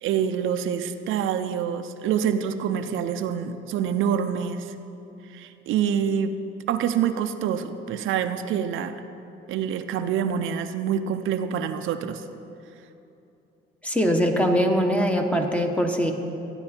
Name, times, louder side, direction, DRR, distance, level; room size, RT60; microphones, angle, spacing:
voice 1, 0.0-4.7 5.3-6.3 6.7-9.0 9.5-12.2, right 8 dB, 85° right, 8 dB, 0.6 m, -26 dB
voice 2, 13.8-16.1, equal, 5° left, 3 dB, 1.2 m, -22 dB
15.0 x 9.8 x 4.4 m, 2.8 s
cardioid pair, 90°, 20 cm